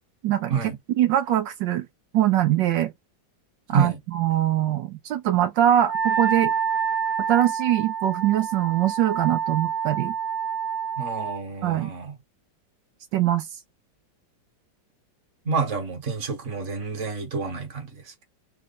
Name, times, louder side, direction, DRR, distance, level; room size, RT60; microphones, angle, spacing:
voice 1, 0.2-0.5 1.0-1.9 2.1-2.9 3.7-6.5 7.3-10.1 11.6-11.9 13.1-13.5, right 12 dB, 80° right, 1.4 m, -22 dB
Wind instrument woodwind instrument, 5.8-11.4, right 7 dB, 25° right, 1.0 m, -27 dB
voice 2, 11.0-12.2 15.5-18.2, right 5 dB, 40° right, 1.7 m, -28 dB
4.3 x 2.4 x 4.1 m
omnidirectional pair, 2.0 m